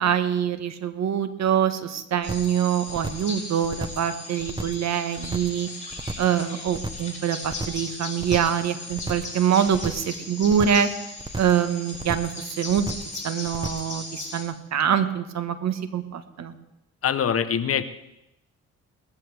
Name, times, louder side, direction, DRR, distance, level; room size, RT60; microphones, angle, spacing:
voice 1, 0.0-5.7 6.2-10.9 11.4-12.8 13.2-16.5, right 8 dB, 60° right, 9 dB, 1.4 m, -24 dB
sound 1, 2.2-14.4, left 2 dB, 25° left, 7.5 m, -38 dB
sound 2, 2.3-2.6 2.9-3.3 3.6-4.1 4.4-4.9 5.2-5.6 5.9-6.4 6.7-7.1 7.4-7.9 8.2-8.6 8.9-9.4 9.7-10.1 10.4-10.9 11.2-11.6 11.9-12.4 12.7-13.2 13.5-13.9, right 2 dB, 15° right, 1.1 m, -33 dB
voice 2, 17.0-17.8, left 8 dB, 50° left, 11 dB, 1.0 m, -23 dB
20.0 x 14.0 x 3.5 m, 0.90 s
cardioid pair, 90°, 30 cm